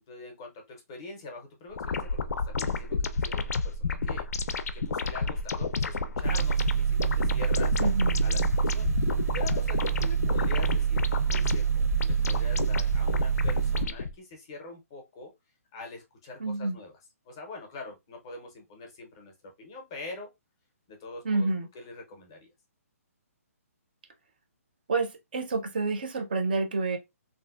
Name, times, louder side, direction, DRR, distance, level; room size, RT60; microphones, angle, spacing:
voice 1, 0.1-7.8 8.2-15.3 15.7-16.9 17.3-20.3 20.9-21.5 21.7-22.5, left 3 dB, 20° left, 0.5 m, -44 dB
sound 1, 1.7-14.1, left 4 dB, 85° left, 0.4 m, -31 dB
sound 2, 6.2-13.8, right 7 dB, 85° right, 0.6 m, -26 dB
voice 2, 7.8-8.2 16.4-16.8 21.2-21.7 24.9-27.0, right 3 dB, 35° right, 0.4 m, -28 dB
3.1 x 2.5 x 2.3 m
hypercardioid pair, 180°, 8 cm